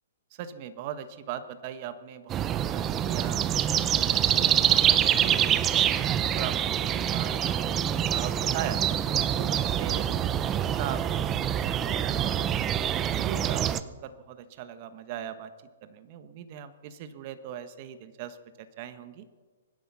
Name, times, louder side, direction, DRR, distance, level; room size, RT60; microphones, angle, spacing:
voice 1, 0.3-6.0 6.3-8.8 9.3-10.4 10.8-12.5 13.0-15.5 15.8-19.3, right 9 dB, 40° right, 11 dB, 1.3 m, -40 dB
sound 1, 2.3-13.8, right 10 dB, 20° right, 0.6 m, -25 dB
24.0 x 10.5 x 5.7 m, 1.4 s
hypercardioid pair, 140°, 0 cm